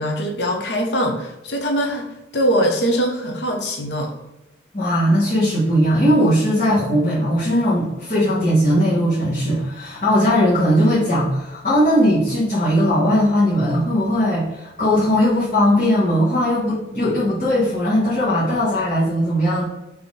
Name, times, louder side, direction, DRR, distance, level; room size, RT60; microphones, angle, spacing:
voice 1, 0.0-4.1, equal, 65° left, 2 dB, 0.7 m, -22 dB
voice 2, 4.7-19.6, equal, 45° left, -10 dB, 1.2 m, -18 dB
3.9 x 2.9 x 3.6 m, 0.98 s
head